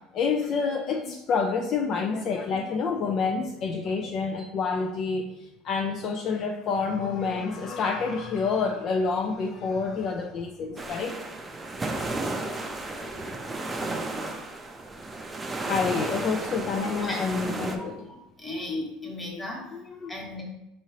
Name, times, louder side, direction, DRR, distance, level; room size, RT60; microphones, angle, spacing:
voice 1, 0.1-5.3 5.6-11.2 13.3-13.4 15.7-18.0 19.7-20.2, left 5 dB, 45° left, 3 dB, 0.3 m, -28 dB
sound 1, 10.8-17.8, right 2 dB, 15° right, 0.5 m, -33 dB
voice 2, 17.8-19.6 20.1-20.4, left 2 dB, 15° left, -2 dB, 1.2 m, -36 dB
4.7 x 3.0 x 2.8 m, 0.94 s
supercardioid pair, 125°, 0 cm